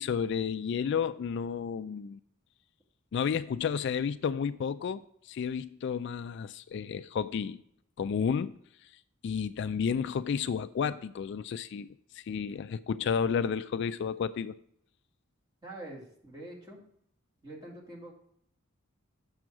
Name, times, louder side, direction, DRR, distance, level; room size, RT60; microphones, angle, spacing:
voice 1, 0.0-2.2 3.1-7.6 8.0-8.6 9.2-11.9 12.1-14.6, left 6 dB, 55° left, 0.3 m, -31 dB
voice 2, 15.6-16.8 17.4-18.1, right 1 dB, 20° right, 2.2 m, -45 dB
7.6 x 6.3 x 4.6 m
head